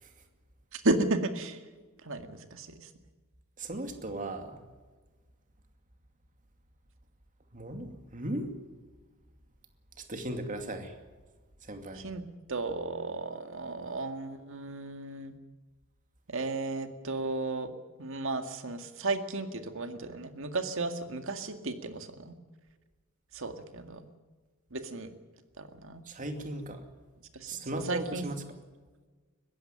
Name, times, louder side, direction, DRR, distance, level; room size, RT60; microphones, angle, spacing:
voice 1, 0.7-1.6 2.0-2.9 11.9-12.2 12.5-15.3 16.3-17.7 18.0-22.3 23.3-24.1 24.7-25.1 25.6-26.0 27.3-28.3, right 2 dB, 65° right, 7 dB, 2.0 m, -34 dB
voice 2, 3.6-4.6 7.5-8.5 10.0-10.9 11.6-12.1 26.0-26.8 27.5-28.4, right 1 dB, 35° right, 6 dB, 2.5 m, -37 dB
21.0 x 15.5 x 9.1 m, 1.3 s
head